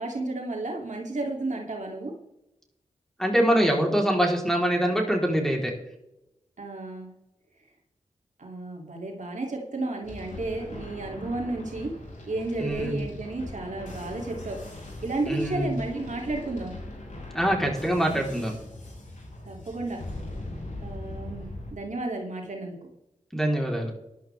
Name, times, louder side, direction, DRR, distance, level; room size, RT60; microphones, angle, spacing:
voice 1, 0.0-2.1 6.6-7.1 8.4-11.9 12.3-14.6 15.0-16.8 19.5-20.0 20.8-22.8, right 2 dB, 60° right, 0 dB, 2.7 m, -32 dB
voice 2, 3.2-5.7 12.6-13.0 15.3-15.8 17.3-18.5 23.3-23.9, right 1 dB, 5° left, 0 dB, 3.7 m, -24 dB
sound 1, 10.0-21.7, left 1 dB, 60° left, 5.7 m, -40 dB
14.0 x 11.5 x 3.5 m, 0.86 s
cardioid pair, 45°, 14 cm